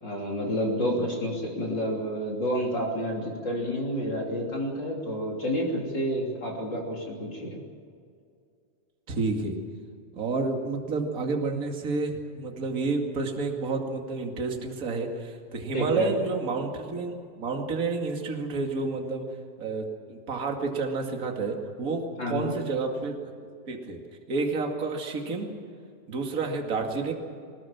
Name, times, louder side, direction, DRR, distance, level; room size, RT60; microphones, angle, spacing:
voice 1, 0.0-7.6 15.7-16.1 22.2-22.5, equal, 30° left, -1 dB, 3.4 m, -29 dB
voice 2, 9.1-9.6 10.1-19.2 19.6-23.4 23.7-24.0 24.3-25.5 26.1-27.1, right 4 dB, 30° right, 2 dB, 2.0 m, -30 dB
22.5 x 19.5 x 7.4 m, 2.3 s
omnidirectional pair, 4.4 m